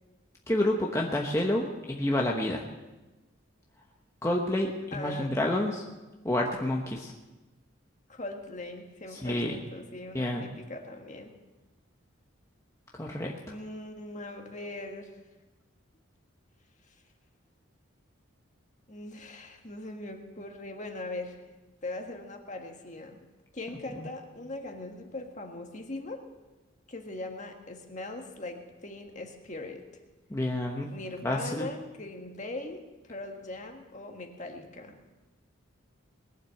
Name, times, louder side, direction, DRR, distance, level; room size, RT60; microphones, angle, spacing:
voice 1, 0.5-2.6 4.2-5.8 6.2-7.1 9.1-9.6 10.1-10.4 12.9-13.3 24.0-24.1 30.3-30.9 31.2-31.7, left 1 dB, 15° left, -1 dB, 1.0 m, -29 dB
voice 2, 4.9-5.3 8.1-11.3 13.5-15.1 18.9-21.4 21.8-23.2 23.5-26.2 26.9-29.9 30.9-35.0, left 2 dB, 35° left, 3 dB, 1.6 m, -40 dB
20.5 x 7.5 x 7.9 m, 1.1 s
head